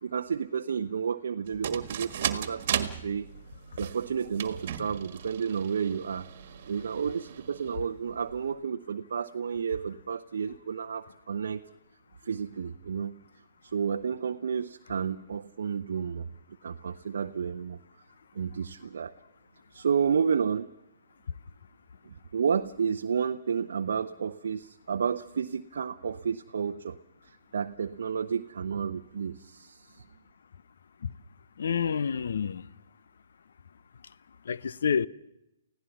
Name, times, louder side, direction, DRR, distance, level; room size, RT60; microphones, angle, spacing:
voice 1, 0.0-3.3 3.8-6.3 6.7-11.6 12.2-13.2 13.6-16.3 16.6-17.8 18.3-19.1 19.7-20.7 22.1-27.0 27.2-30.0, right 6 dB, 70° right, 0.7 m, -31 dB
sound 1, 1.5-8.5, right 9 dB, 55° right, 1.6 m, -37 dB
voice 2, 31.6-32.6 34.5-35.1, left 6 dB, 70° left, 0.7 m, -28 dB
29.5 x 16.5 x 6.0 m
hypercardioid pair, 125°, 0 cm